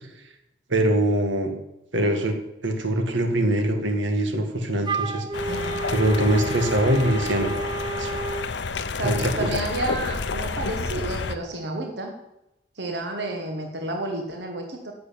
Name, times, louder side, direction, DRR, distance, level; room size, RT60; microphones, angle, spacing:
voice 1, 0.7-1.5 1.9-2.3 2.6-5.3 5.9-7.5 8.0-8.1 9.0-9.3, right 1 dB, 85° right, 5 dB, 1.8 m, -23 dB
Wind instrument woodwind instrument, 4.8-8.5, right 4 dB, 25° right, 0.6 m, -31 dB
sound 1, 5.3-11.3, left 4 dB, 70° left, 0.7 m, -30 dB
voice 2, 5.5-5.9 9.0-12.1 12.8-14.9, right 2 dB, 65° right, 3 dB, 1.6 m, -31 dB
11.0 x 7.0 x 8.8 m, 0.90 s
head